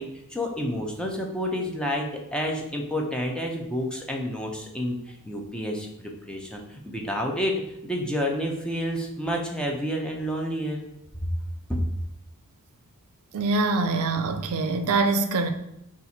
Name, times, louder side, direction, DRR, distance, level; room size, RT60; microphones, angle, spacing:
voice 1, 0.0-2.1 2.3-7.5 7.8-10.8 11.7-11.8, equal, 5° left, 0.5 m, -29 dB
voice 2, 13.3-15.5, right 3 dB, 70° right, 0.4 m, -24 dB
4.0 x 2.4 x 4.2 m
head